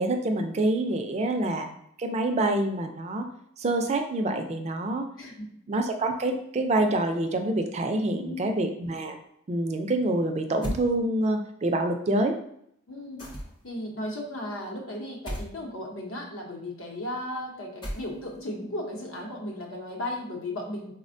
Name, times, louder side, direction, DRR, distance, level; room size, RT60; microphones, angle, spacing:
voice 1, 0.0-1.7 2.0-3.3 3.6-5.1 5.7-9.2 9.5-12.4, right 2 dB, 30° right, 5 dB, 0.3 m, -26 dB
voice 2, 8.2-8.6 12.9-13.3 13.6-20.9, left 1 dB, 70° left, 0 dB, 0.7 m, -35 dB
sound 1, 10.6-10.9 13.2-13.7 15.3-15.5 17.8-18.4, equal, 20° left, 0.5 m, -34 dB
4.1 x 2.1 x 2.5 m, 0.71 s
head